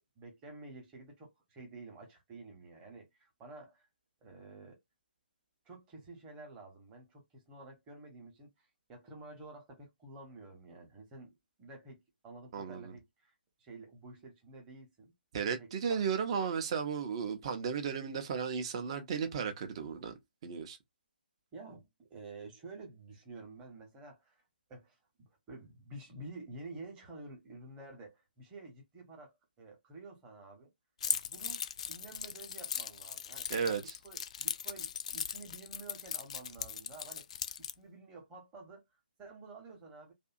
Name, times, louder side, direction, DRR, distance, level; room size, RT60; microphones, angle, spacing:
voice 1, 0.2-3.9 4.2-4.8 5.6-8.5 8.9-13.3 13.6-15.1 15.6-16.0 21.5-24.4 24.7-30.7 31.1-31.6 31.9-37.3 37.6-38.8 39.2-40.1, right 2 dB, 15° right, 1.0 m, -50 dB
voice 2, 12.5-12.9 15.3-20.8 33.5-33.9, right 6 dB, 35° right, 0.7 m, -35 dB
Keys jangling, 31.0-37.7, left 8 dB, 40° left, 0.3 m, -38 dB
2.6 x 2.6 x 2.4 m
figure-of-eight pair, 135°, 5 cm